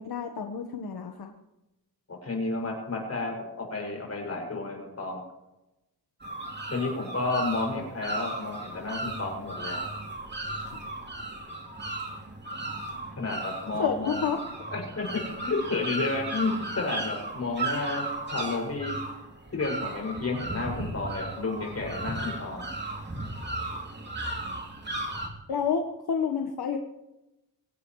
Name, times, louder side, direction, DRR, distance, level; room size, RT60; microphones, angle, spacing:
voice 1, 0.0-1.3 13.7-14.4 25.5-26.8, left 6 dB, 70° left, 3 dB, 1.4 m, -29 dB
voice 2, 2.1-5.2 6.7-9.8 13.2-14.2 14.7-18.0 18.3-19.0 19.5-22.7, left 3 dB, 40° left, 0 dB, 6.5 m, -31 dB
sound 1, 6.2-25.3, right 2 dB, 25° right, 3.0 m, -35 dB
24.5 x 17.0 x 3.2 m, 0.96 s
wide cardioid pair, 135°, 39 cm